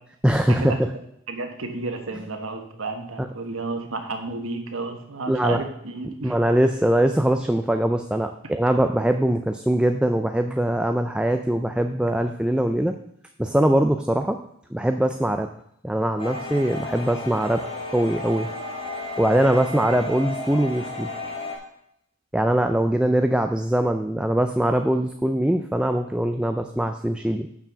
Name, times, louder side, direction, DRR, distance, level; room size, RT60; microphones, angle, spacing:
voice 1, 0.2-0.9 3.2-3.3 5.3-5.6 6.2-13.0 13.4-14.4 14.7-15.5 15.8-17.6 17.9-18.5 19.2-21.1 22.3-27.5, right 1 dB, 5° right, 6 dB, 0.3 m, -22 dB
voice 2, 1.3-6.3, right 3 dB, 75° right, 5 dB, 1.3 m, -32 dB
sound 1, 16.2-21.6, left 2 dB, 25° left, 2.6 m, -33 dB
7.0 x 5.9 x 6.7 m, 0.74 s
head